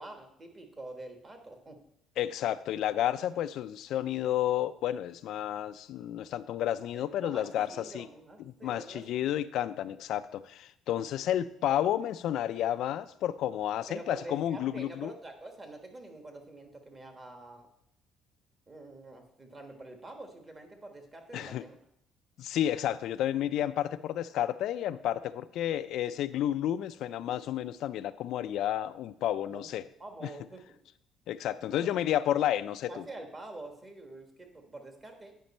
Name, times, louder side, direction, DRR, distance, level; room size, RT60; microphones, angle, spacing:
voice 1, 0.0-1.8 6.9-9.0 13.9-17.7 18.7-21.8 29.5-30.8 31.6-31.9 32.9-35.4, right 2 dB, 25° right, 4 dB, 1.4 m, -46 dB
voice 2, 2.2-7.7 7.9-8.1 8.6-15.1 21.3-21.6 22.4-29.8 31.3-33.0, left 11 dB, 70° left, 13 dB, 0.3 m, -31 dB
9.1 x 5.2 x 4.2 m, 0.72 s
cardioid pair, 115°, 0 cm